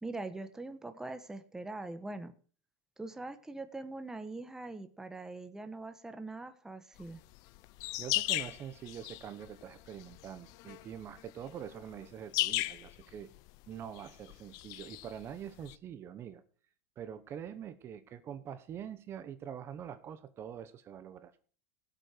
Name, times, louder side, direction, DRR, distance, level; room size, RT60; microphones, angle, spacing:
voice 1, 0.0-2.3 3.0-7.2, right 2 dB, 5° right, 9 dB, 1.2 m, -42 dB
sound 1, 7.0-15.8, left 19 dB, 50° left, 0.7 m, -38 dB
voice 2, 8.0-13.3 13.7-16.4 17.0-21.3, right 9 dB, 30° right, 12 dB, 1.1 m, -45 dB
16.5 x 8.1 x 4.5 m, 0.41 s
supercardioid pair, 130°, 8 cm